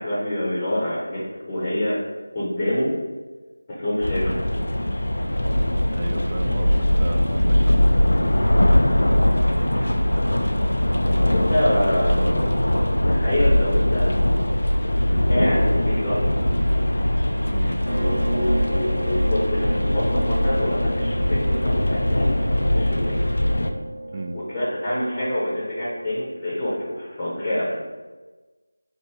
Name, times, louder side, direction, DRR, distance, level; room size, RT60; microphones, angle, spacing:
voice 1, 0.0-2.0 2.3-2.9 3.7-4.3 9.5-10.7 11.2-12.6 13.1-14.1 15.1-16.3 17.9-23.1 24.3-27.8, left 1 dB, 20° left, -7 dB, 0.8 m, -26 dB
sound 1, 4.0-23.7, left 1 dB, 70° left, 0.5 m, -21 dB
voice 2, 5.9-7.8 17.5-17.8 24.1-24.4, right 2 dB, 30° right, 5 dB, 0.3 m, -33 dB
sound 2, 17.8-26.4, right 1 dB, 70° right, 0.6 m, -33 dB
4.4 x 2.5 x 4.5 m, 1.3 s
figure-of-eight pair, 170°, 0 cm